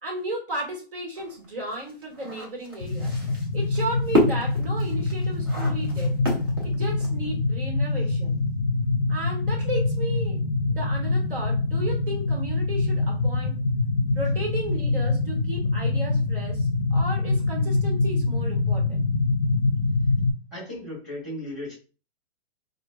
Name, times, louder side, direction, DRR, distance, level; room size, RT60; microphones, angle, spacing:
voice 1, 0.0-3.1 3.5-6.1 6.6-8.4 9.1-13.6 14.1-19.0, right 1 dB, 55° right, -1 dB, 1.6 m, -34 dB
sound 1, 1.2-7.3, equal, 20° right, 0.5 m, -29 dB
sound 2, 2.8-20.3, left 3 dB, 45° left, 0.5 m, -25 dB
voice 2, 20.5-21.8, left 1 dB, ahead, -9 dB, 1.5 m, -35 dB
4.5 x 2.5 x 2.3 m, 0.36 s
hypercardioid pair, 180°, 33 cm